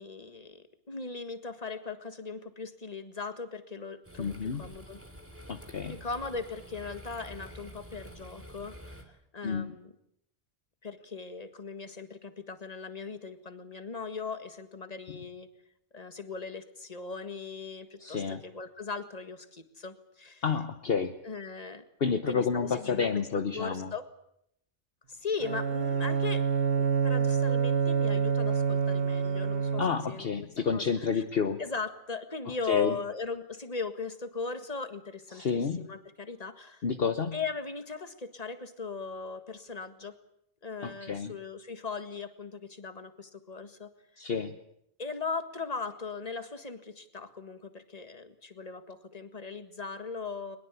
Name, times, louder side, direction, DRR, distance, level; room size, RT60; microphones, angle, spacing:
voice 1, 0.0-4.3 4.6-5.0 5.9-9.9 10.8-15.5 15.9-20.4 21.2-21.8 22.3-23.1 23.5-24.1 25.1-26.5 26.7-29.8 30.1-30.5 30.7-30.8 31.1-31.2 31.6-36.8 37.3-40.2 40.6-43.9 45.0-50.6, left 4 dB, 35° left, 9 dB, 1.8 m, -39 dB
sound 1, 4.0-9.0, right 1 dB, 10° right, 2.7 m, -48 dB
voice 2, 4.2-4.7 5.5-6.0 9.4-9.8 18.0-18.4 20.4-21.2 22.0-23.9 29.8-31.6 32.7-33.0 35.3-35.9 36.8-37.4 40.8-41.3 44.2-44.6, left 6 dB, 55° left, 8 dB, 1.3 m, -30 dB
Bowed string instrument, 25.4-30.2, right 6 dB, 55° right, 1.5 m, -27 dB
22.5 x 21.0 x 8.3 m, 0.75 s
omnidirectional pair, 1.2 m